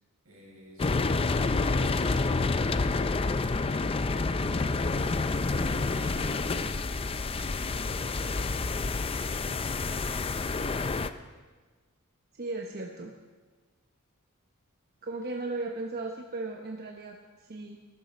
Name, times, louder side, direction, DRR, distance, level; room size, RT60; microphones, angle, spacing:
voice 1, 0.2-4.9 5.4-6.8 7.1-8.3, right 1 dB, 80° right, -2 dB, 4.6 m, -51 dB
sound 1, 0.8-11.1, left 3 dB, 25° left, 0.4 m, -28 dB
voice 2, 12.4-13.1 15.0-17.8, right 2 dB, 45° right, 2 dB, 0.9 m, -36 dB
17.5 x 13.5 x 4.3 m, 1.3 s
head